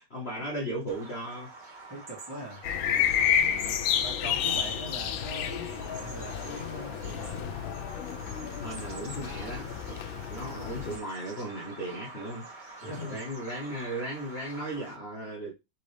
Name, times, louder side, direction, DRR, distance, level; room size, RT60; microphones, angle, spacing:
voice 1, 0.1-1.5 3.4-3.8 8.5-10.0 10.3-12.5 12.8-15.5, right 1 dB, 40° left, 1.1 m, -36 dB
Bird vocalization bird call bird song, 0.9-14.9, right 3 dB, 30° right, 1.1 m, -47 dB
voice 2, 1.9-2.6 4.0-7.5 10.2-10.8 12.8-13.2, equal, 10° right, 1.5 m, -42 dB
sound 1, 2.6-11.0, left 9 dB, 75° left, 1.3 m, -30 dB
4.3 x 3.5 x 3.3 m
omnidirectional pair, 2.3 m